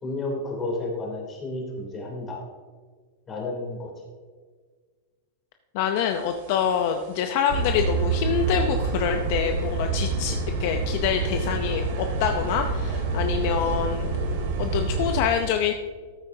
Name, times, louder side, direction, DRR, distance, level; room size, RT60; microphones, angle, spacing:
voice 1, 0.0-2.4 3.3-3.9, left 2 dB, 25° left, -1 dB, 3.1 m, -31 dB
voice 2, 5.7-14.1 14.6-15.7, left 8 dB, 55° left, 5 dB, 0.6 m, -26 dB
sound 1, 6.3-6.6 7.0-7.1 7.5-15.2, right 3 dB, 60° right, 2.2 m, -27 dB
14.0 x 8.8 x 2.8 m, 1.6 s
hypercardioid pair, 135°, 0 cm